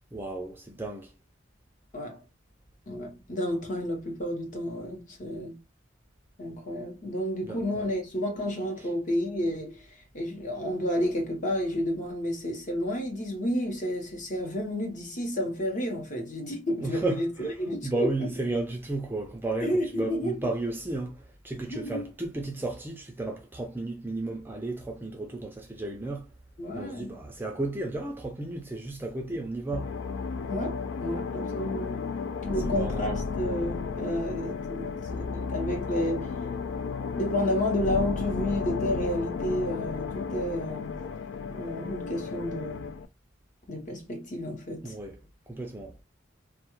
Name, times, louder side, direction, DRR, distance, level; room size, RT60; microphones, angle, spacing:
voice 1, 0.1-1.1 7.5-7.9 16.8-17.5 17.8-19.7 20.0-21.2 21.4-26.2 26.8-29.9 32.6-33.1 44.8-45.1 45.5-45.9, right 2 dB, 10° right, 0.4 m, -33 dB
voice 2, 2.9-5.6 6.4-18.3 19.6-20.5 21.7-22.1 26.6-27.2 30.5-32.1 32.4-36.3 37.2-40.9 41.5-42.9 43.7-44.9, equal, 45° left, 0.9 m, -31 dB
sound 1, 29.7-43.1, left 5 dB, 75° left, 0.3 m, -33 dB
2.3 x 2.2 x 3.0 m
head